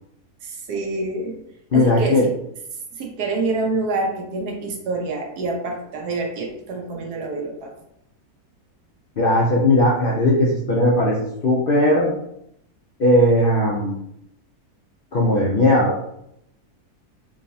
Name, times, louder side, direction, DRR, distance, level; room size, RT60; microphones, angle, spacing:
voice 1, 0.4-1.4 1.7-2.3 2.9-7.7, right 3 dB, 80° right, 1 dB, 1.3 m, -27 dB
voice 2, 1.7-2.3 9.2-12.1 13.0-14.0 15.1-16.0, left 1 dB, 65° left, -4 dB, 0.5 m, -18 dB
3.6 x 3.1 x 2.6 m, 0.77 s
omnidirectional pair, 1.7 m